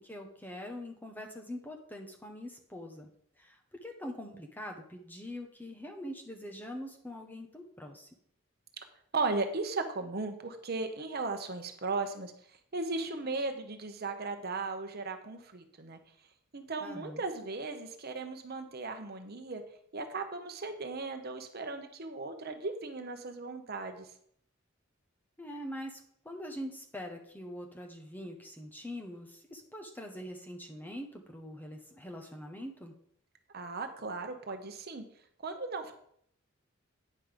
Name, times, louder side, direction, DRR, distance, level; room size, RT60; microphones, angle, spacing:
voice 1, 0.0-3.1 3.4-3.6 3.8-8.1 16.8-17.2 25.4-32.9, equal, 10° left, 2 dB, 1.0 m, -43 dB
voice 2, 9.1-12.3 12.7-16.0 16.5-19.6 19.9-24.1 33.5-35.0 35.4-35.9, right 3 dB, 50° right, 6 dB, 0.9 m, -36 dB
9.5 x 5.3 x 5.1 m, 0.65 s
head